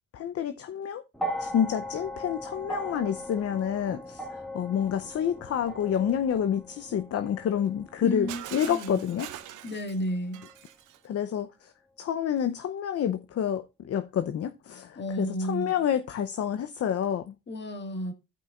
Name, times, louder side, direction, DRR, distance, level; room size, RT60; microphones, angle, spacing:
voice 1, 0.1-1.0 1.4-4.3 4.5-9.3 11.0-11.7 12.0-17.4, left 9 dB, 50° left, 0.7 m, -28 dB
sound 1, 1.1-9.5 10.5-10.6, equal, ahead, 1.8 m, -39 dB
voice 2, 8.0-9.0 9.6-10.4 15.0-15.8 17.5-18.1, equal, 35° left, 1.8 m, -32 dB
Shatter, 8.3-11.1, right 12 dB, 90° right, 0.9 m, -43 dB
15.0 x 5.5 x 2.4 m
cardioid pair, 90°, 30 cm